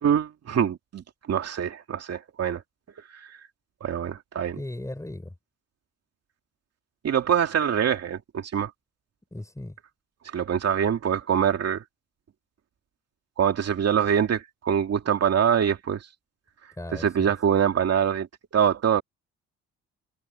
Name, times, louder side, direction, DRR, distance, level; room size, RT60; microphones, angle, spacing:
voice 1, 0.0-2.6 3.8-4.6 7.0-8.7 10.3-11.8 13.4-16.1 17.0-18.3 18.5-19.0, right 8 dB, 55° right, 2.4 m, -24 dB
voice 2, 4.5-5.3 9.3-9.8 16.8-17.3, left 1 dB, 10° left, 5.5 m, -37 dB
cardioid pair, 90°, 30 cm